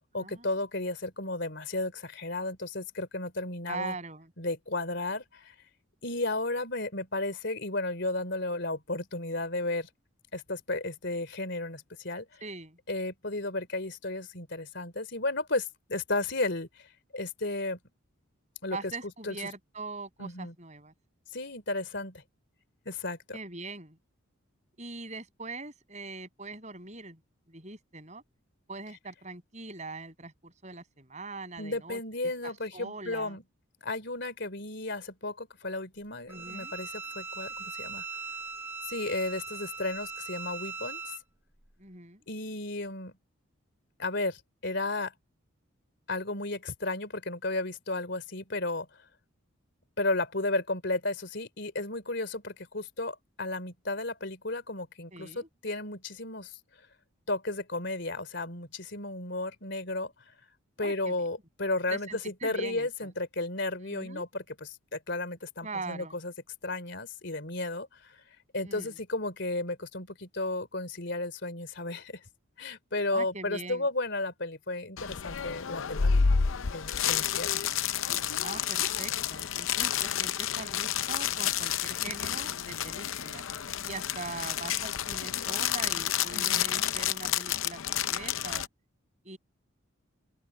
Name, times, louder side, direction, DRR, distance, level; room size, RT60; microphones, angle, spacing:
voice 1, 0.1-3.9 4.4-5.5 6.0-9.9 10.3-12.4 12.9-17.8 18.6-18.8 19.2-19.4 20.2-20.5 21.3-22.2 22.9-23.4 31.6-33.4 33.8-38.0 38.9-41.1 42.3-43.1 44.0-45.1 46.1-48.9 50.0-56.6 57.3-60.1 60.8-66.3 66.6-68.2 68.5-72.3 72.6-76.1 76.7-77.6 86.3-86.7, left 2 dB, 55° left, 3.9 m, -33 dB
voice 2, 3.7-4.3 12.4-12.8 18.7-20.9 23.3-24.0 24.8-27.2 27.5-28.2 28.7-32.0 32.4-33.4 36.3-36.7 41.8-42.2 55.1-55.5 60.8-61.1 61.9-62.9 63.8-64.2 65.6-66.2 68.6-68.9 73.1-73.9 78.4-83.4 83.8-88.7 89.2-89.4, right 3 dB, 35° right, 7.5 m, -42 dB
Bowed string instrument, 36.3-41.2, right 5 dB, 10° right, 0.8 m, -40 dB
sound 1, 75.0-88.7, left 8 dB, 70° left, 0.6 m, -30 dB
open air
head